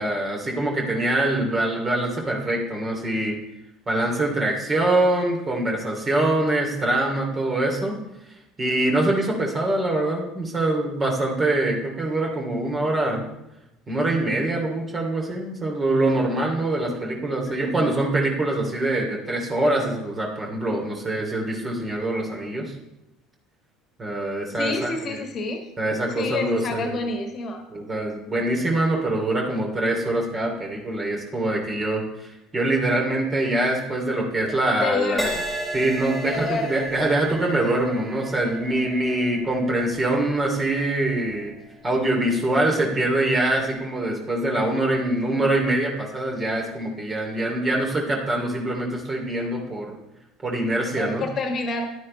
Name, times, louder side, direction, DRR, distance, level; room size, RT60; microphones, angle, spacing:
voice 1, 0.0-3.4 3.9-8.0 8.6-13.2 13.9-22.7 24.0-25.2 25.8-27.0 27.7-32.3 32.5-35.3 35.7-41.5 41.8-49.9 50.4-51.2, right 1 dB, 30° right, 0 dB, 2.9 m, -24 dB
voice 2, 17.4-18.0 24.5-25.6 26.0-27.6 34.5-35.4 36.2-36.9 51.0-51.9, left 3 dB, 40° left, 5 dB, 1.6 m, -28 dB
Crash cymbal, 35.2-42.8 43.5-43.8, right 1 dB, 10° right, 2.7 m, -36 dB
11.5 x 9.4 x 3.3 m, 0.93 s
figure-of-eight pair, 65°, 0 cm